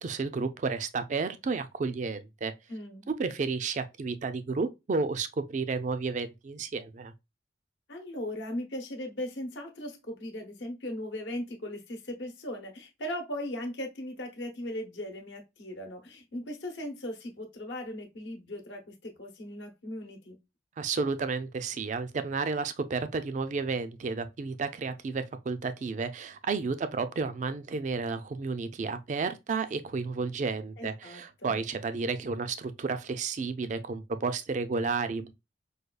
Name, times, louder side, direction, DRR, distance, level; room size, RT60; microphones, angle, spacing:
voice 1, 0.0-2.5 3.1-7.1 20.8-35.3, right 4 dB, 45° right, 0.3 m, -32 dB
voice 2, 2.7-3.1 7.9-20.4 30.8-31.6, left 1 dB, 80° left, 0.9 m, -38 dB
4.9 x 2.3 x 2.2 m
head